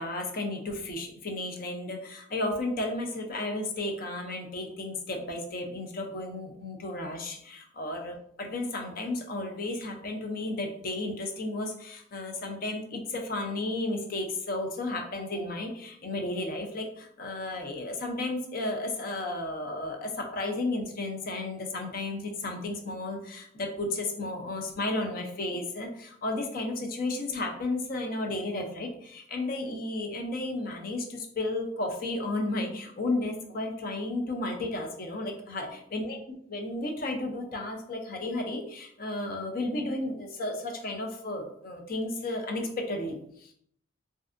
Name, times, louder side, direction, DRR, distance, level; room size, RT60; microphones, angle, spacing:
voice 1, 0.0-36.2 36.5-43.5, left 2 dB, 50° left, 3 dB, 0.5 m, -33 dB
3.2 x 2.6 x 2.5 m, 0.67 s
head